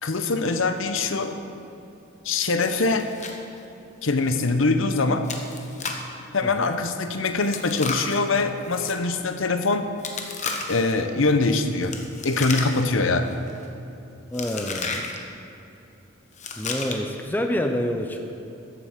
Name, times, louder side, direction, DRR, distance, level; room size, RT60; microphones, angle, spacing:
voice 1, 0.0-1.3 2.2-3.1 4.0-5.2 6.3-9.8 10.7-11.9 12.2-13.3, left 3 dB, 65° left, 8 dB, 0.8 m, -23 dB
Chewing mastication, 2.7-3.4 3.6-3.7 4.2-4.4 5.2-6.1 7.4-9.0 10.0-10.9 11.8-13.0 13.3-13.7 14.3-15.2 16.3-17.2, left 4 dB, 35° left, 1.1 m, -33 dB
voice 2, 6.4-6.7 14.3-15.1 16.6-18.3, equal, 10° left, 4 dB, 0.6 m, -27 dB
14.0 x 8.0 x 5.8 m, 2.9 s
head